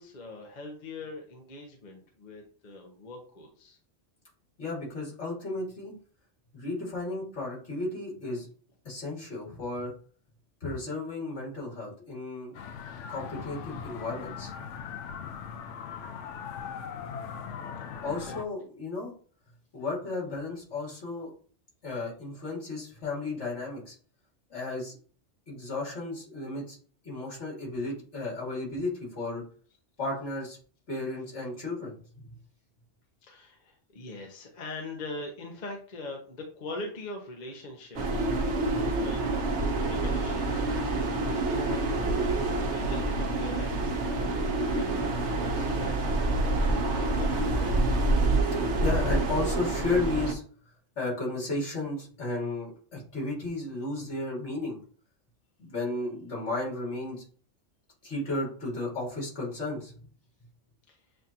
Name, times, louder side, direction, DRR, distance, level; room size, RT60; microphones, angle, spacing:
voice 1, 0.0-3.8 16.6-16.8 33.2-48.1 60.9-61.0, left 2 dB, 40° left, 1 dB, 0.9 m, -43 dB
voice 2, 4.6-5.9 6.5-8.5 8.8-9.9 10.6-12.5 13.1-14.7 18.0-19.1 19.7-21.3 21.8-23.9 24.5-25.0 25.5-26.8 27.0-29.4 30.0-30.6 30.9-32.3 38.7-38.9 48.8-50.4 51.0-54.8 55.6-57.2 58.0-59.9, left 2 dB, 70° left, -4 dB, 2.5 m, -34 dB
sound 1, 12.5-18.4, left 7 dB, 90° left, 0.9 m, -39 dB
sound 2, 37.9-50.3, right 2 dB, 70° right, 1.1 m, -27 dB
7.5 x 2.5 x 2.8 m, 0.43 s
omnidirectional pair, 1.2 m